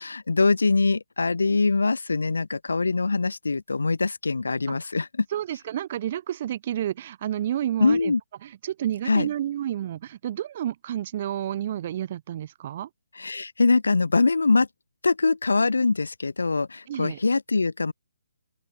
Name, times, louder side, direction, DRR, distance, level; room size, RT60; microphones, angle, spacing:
voice 1, 0.0-5.2 7.8-8.2 9.1-9.3 13.2-14.7 15.0-17.9, left 3 dB, 80° left, 3.1 m, -23 dB
voice 2, 5.3-8.1 8.4-12.9 16.9-17.2, right 11 dB, 40° right, 6.0 m, -30 dB
open air
figure-of-eight pair, 145°, 0 cm